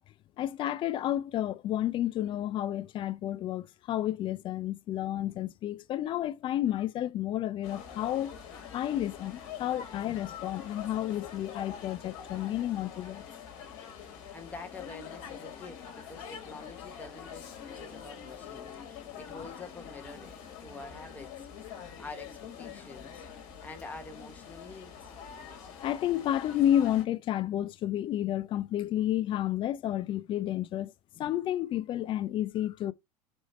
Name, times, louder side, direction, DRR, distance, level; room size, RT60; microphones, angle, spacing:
voice 1, 0.4-8.3 8.7-13.2 21.9-22.0 25.8-32.9, left 12 dB, 25° left, 0.3 m, -31 dB
sound 1, 7.6-27.0, left 8 dB, 50° left, 1.6 m, -45 dB
voice 2, 14.0-23.2 23.6-25.1, left 3 dB, 10° left, 1.0 m, -47 dB
4.2 x 3.1 x 4.1 m
figure-of-eight pair, 90°, 20 cm